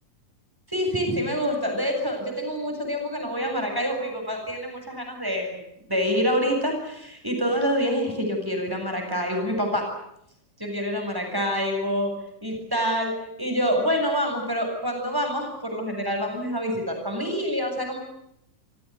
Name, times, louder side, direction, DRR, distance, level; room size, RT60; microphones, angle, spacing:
voice 1, 0.7-5.6 5.9-9.8 10.6-12.1 12.4-18.0, equal, 5° right, 2 dB, 7.7 m, -26 dB
28.5 x 18.0 x 9.5 m, 0.77 s
omnidirectional pair, 3.5 m